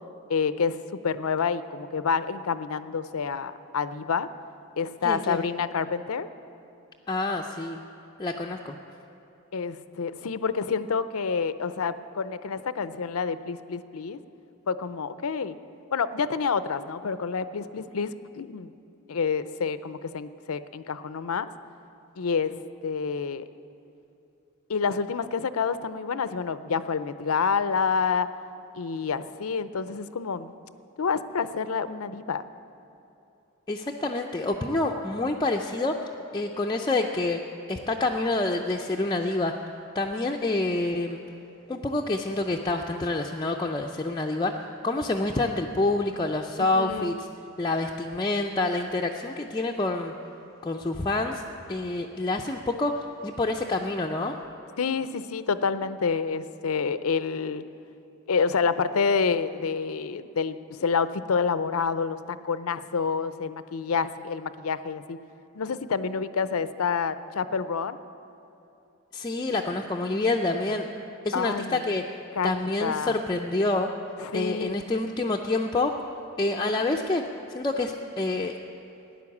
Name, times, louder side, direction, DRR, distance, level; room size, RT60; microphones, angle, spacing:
voice 1, 0.3-0.8 1.0-4.3 4.8-6.3 9.5-14.2 14.7-15.6 15.9-18.7 19.1-21.5 22.2-22.6 22.8-23.4 24.7-28.3 28.7-30.5 31.0-32.5 46.6-47.2 54.8-57.6 58.3-65.2 65.5-68.0 71.3-71.9 72.4-73.1 74.2-74.8, left 5 dB, 80° left, 13 dB, 0.5 m, -28 dB
voice 2, 5.0-5.4 7.1-7.8 8.2-8.8 33.7-37.4 37.7-39.5 39.9-41.2 41.7-44.5 44.8-47.3 47.6-50.1 50.6-51.4 51.7-54.3 69.1-70.9 71.2-72.0 72.4-73.9 74.3-75.9 76.4-77.2 77.5-78.6, left 2 dB, 20° left, 0 dB, 0.5 m, -27 dB
15.5 x 10.5 x 7.2 m, 2.9 s
head